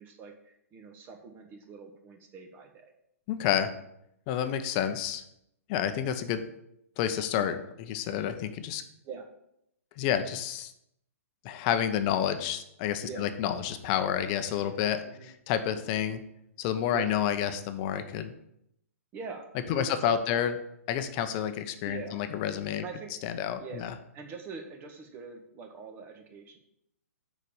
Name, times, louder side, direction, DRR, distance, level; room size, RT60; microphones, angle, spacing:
voice 1, 0.0-2.9 9.0-9.3 13.0-13.4 14.6-15.3 15.7-15.8 16.9-17.2 19.1-20.4 21.8-22.2 22.8-23.1 23.6-26.6, right 5 dB, 25° right, 4 dB, 1.4 m, -44 dB
voice 2, 3.3-3.7 4.3-5.2 5.7-6.4 7.0-8.8 10.0-10.7 11.4-16.2 16.6-18.3 19.7-20.5 20.9-22.8 23.2-23.9, left 9 dB, 35° left, 9 dB, 0.8 m, -29 dB
6.6 x 5.2 x 7.1 m, 0.77 s
figure-of-eight pair, 125°, 8 cm